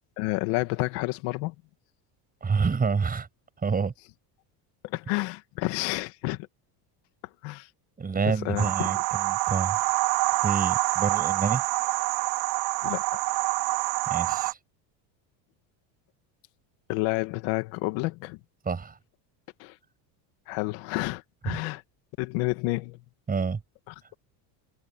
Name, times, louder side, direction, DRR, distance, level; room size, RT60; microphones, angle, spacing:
voice 1, 0.2-1.5 4.8-6.5 7.4-7.7 8.4-8.9 12.8-13.2 16.9-18.4 19.6-19.8 20.5-21.8 22.2-23.0 23.9-24.1, left 21 dB, 75° left, 2.1 m, -30 dB
voice 2, 2.4-3.3 3.6-3.9 8.0-9.8 10.4-11.6 14.1-14.6 18.6-19.0 21.5-21.6 23.3-23.6, right 5 dB, 20° right, 6.4 m, -28 dB
sound 1, 8.6-14.5, right 21 dB, 75° right, 3.7 m, -26 dB
cardioid pair, 145°, 45 cm